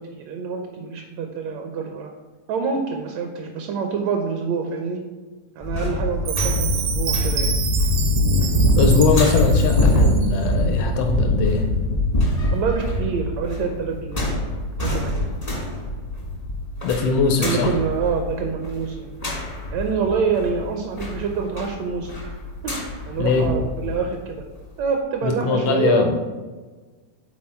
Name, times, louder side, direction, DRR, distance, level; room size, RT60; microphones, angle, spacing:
voice 1, 0.0-2.1 2.5-5.0 5.6-7.5 12.5-14.4 14.8-15.3 17.4-19.1 19.7-22.1 22.6-22.7 23.0-24.4 24.8-26.1, right 5 dB, 75° right, 4 dB, 1.7 m, -26 dB
sound 1, 5.6-24.0 24.4-24.5, left 1 dB, 45° left, 0.4 m, -23 dB
Chime, 6.3-10.3, right 8 dB, 90° right, 2.4 m, -29 dB
voice 2, 8.8-11.7 16.8-17.7 23.2-23.5 25.2-26.2, left 4 dB, 85° left, 4 dB, 1.3 m, -21 dB
9.7 x 4.1 x 4.3 m, 1.3 s
omnidirectional pair, 3.7 m